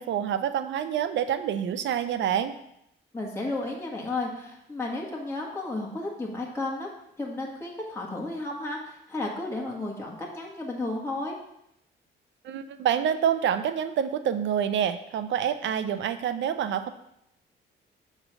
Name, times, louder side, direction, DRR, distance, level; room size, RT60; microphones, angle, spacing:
voice 1, 0.0-2.5 12.4-16.9, right 9 dB, 70° right, 11 dB, 0.5 m, -27 dB
voice 2, 3.1-6.9 7.2-11.3, left 2 dB, 15° left, -2 dB, 1.5 m, -33 dB
7.3 x 3.3 x 6.1 m, 0.77 s
cardioid pair, 90°, 20 cm